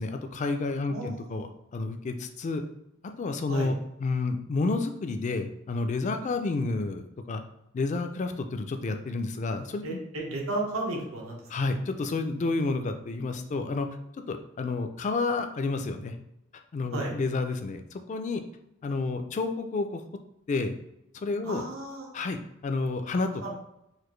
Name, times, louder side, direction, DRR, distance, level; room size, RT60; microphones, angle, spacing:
voice 1, 0.0-2.6 3.2-3.7 4.0-7.4 7.7-10.0 11.5-13.9 14.3-16.1 16.7-18.4 18.8-20.0 20.5-20.7 21.1-21.6 22.1-23.5, left 3 dB, 35° left, 7 dB, 0.3 m, -30 dB
voice 2, 0.9-1.4 3.5-3.7 9.8-11.4 16.9-17.2 21.4-22.1 23.4-23.5, right 2 dB, 85° right, -1 dB, 1.0 m, -33 dB
4.0 x 2.5 x 3.1 m, 0.83 s
head